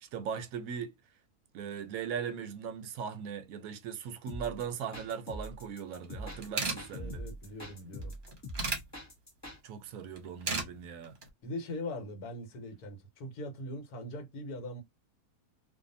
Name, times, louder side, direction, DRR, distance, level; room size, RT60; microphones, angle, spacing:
voice 1, 0.0-0.9 1.5-7.2 9.6-11.2, right 7 dB, 70° right, 0.9 m, -39 dB
sound 1, 4.3-9.6, equal, 15° left, 0.5 m, -43 dB
sound 2, 6.0-6.1 6.3-6.8 8.0-8.8 10.2-10.7 11.0-11.3, right 3 dB, 40° right, 0.8 m, -33 dB
voice 2, 6.3-8.1 11.4-14.8, left 1 dB, 75° left, 1.4 m, -41 dB
2.7 x 2.3 x 2.5 m
omnidirectional pair, 1.7 m